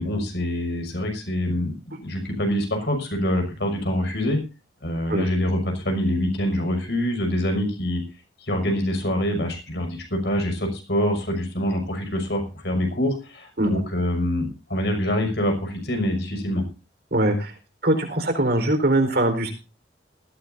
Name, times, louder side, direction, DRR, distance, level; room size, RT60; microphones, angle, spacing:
voice 1, 0.0-4.4 4.8-8.0 8.4-16.6, equal, 65° left, 5 dB, 6.1 m, -25 dB
voice 2, 17.1-17.5 17.8-19.5, right 1 dB, 60° right, 6 dB, 4.3 m, -21 dB
19.5 x 15.0 x 2.7 m, 0.31 s
head